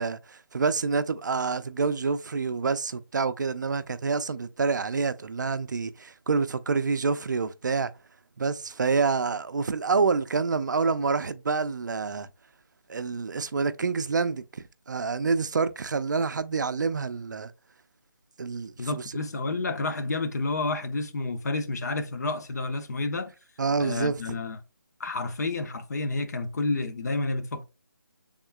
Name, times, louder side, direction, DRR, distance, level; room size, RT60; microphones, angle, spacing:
voice 1, 0.0-7.9 8.4-12.3 12.9-17.5 18.4-19.1 23.6-24.4, right 4 dB, 60° right, 0.4 m, -27 dB
voice 2, 18.8-23.3 23.8-24.6 25.0-27.6, left 3 dB, 50° left, 0.6 m, -30 dB
6.1 x 3.6 x 2.2 m
figure-of-eight pair, 160°, 11 cm